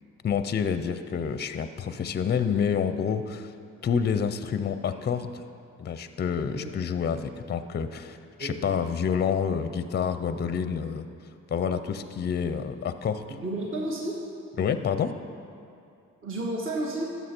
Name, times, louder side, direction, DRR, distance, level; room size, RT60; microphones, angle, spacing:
voice 1, 0.2-3.5 3.8-5.4 5.8-11.1 11.5-13.2 14.6-15.2, left 7 dB, 35° left, 11 dB, 0.5 m, -28 dB
voice 2, 8.4-8.7 13.4-14.2 16.2-17.2, right 1 dB, 45° right, -2 dB, 1.5 m, -31 dB
13.0 x 7.0 x 4.4 m, 2.5 s
cardioid pair, 90°, 30 cm